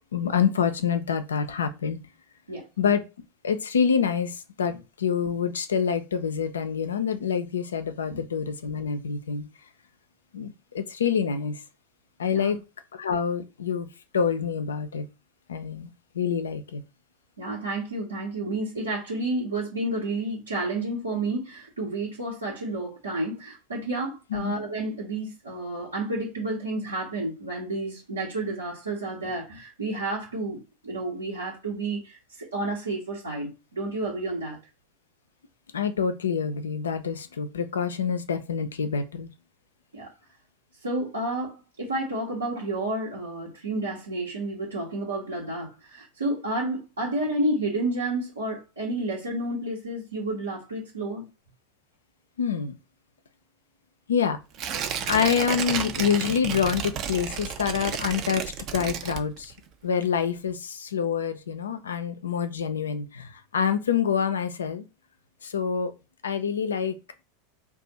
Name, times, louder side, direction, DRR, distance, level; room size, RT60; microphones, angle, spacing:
voice 1, 0.1-2.0 2.8-3.0 3.4-9.5 10.3-11.6 12.2-12.6 12.9-15.0 15.5-15.9 16.1-16.8 24.3-24.5 35.7-39.3 52.4-52.7 54.1-54.4 55.1-59.5 59.8-64.9 65.4-65.9 66.2-67.0, left 7 dB, 80° left, 0.5 m, -26 dB
voice 2, 17.4-34.6 39.9-40.1 40.8-51.3, right 2 dB, 85° right, 1.0 m, -30 dB
Tearing, 54.5-59.7 60.0-60.1, right 8 dB, 45° right, 0.5 m, -32 dB
2.5 x 2.3 x 4.1 m
figure-of-eight pair, 85°, 0 cm